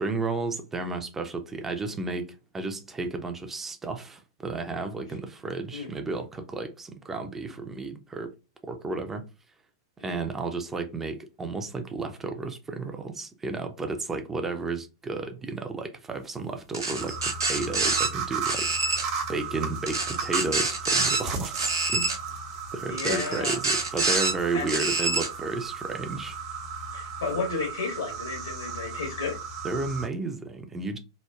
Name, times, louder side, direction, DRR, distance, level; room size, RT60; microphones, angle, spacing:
voice 1, 0.0-8.3 8.6-9.3 10.0-22.1 22.7-26.4 29.6-31.0, right 3 dB, 15° right, 0.4 m, -33 dB
sound 1, 16.7-18.1 18.4-19.0 19.9-21.2 21.5-22.2 23.0-24.3 24.7-25.3, right 3 dB, 75° right, 0.7 m, -26 dB
sound 2, 17.0-30.1, right 5 dB, 40° right, 0.8 m, -35 dB
voice 2, 22.9-23.6 24.5-24.9 26.9-29.4, left 4 dB, 75° left, 1.0 m, -32 dB
2.9 x 2.0 x 2.2 m
figure-of-eight pair, 105°, 2 cm